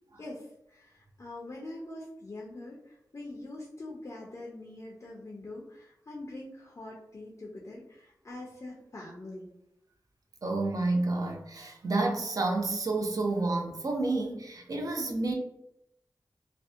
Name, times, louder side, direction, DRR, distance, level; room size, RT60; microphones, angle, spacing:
voice 1, 0.2-9.5, left 2 dB, 40° left, -3 dB, 0.4 m, -44 dB
voice 2, 10.4-15.3, right 2 dB, 55° right, 2 dB, 0.5 m, -30 dB
2.6 x 2.1 x 2.4 m, 0.80 s
wide cardioid pair, 85°, 7 cm